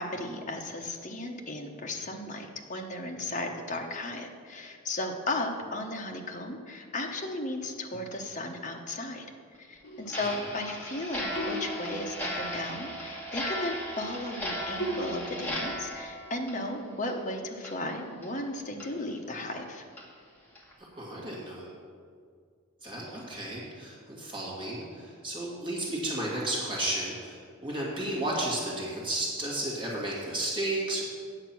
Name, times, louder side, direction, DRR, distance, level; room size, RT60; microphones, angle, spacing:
voice 1, 0.0-9.3 9.6-19.8, left 1 dB, 35° left, 2 dB, 0.9 m, -35 dB
sound 1, 9.8-11.0 11.4-12.6 14.8-15.1, equal, 60° left, 1.0 m, -37 dB
Clock, 10.1-17.3 17.6-17.7 18.2-18.3 18.8-18.9 19.4-19.5 20.0-20.1 20.5-20.7, equal, 10° left, 1.4 m, -37 dB
voice 2, 21.0-21.7 22.8-31.0, right 1 dB, 25° right, -5 dB, 2.1 m, -33 dB
8.8 x 7.3 x 6.0 m, 2.1 s
head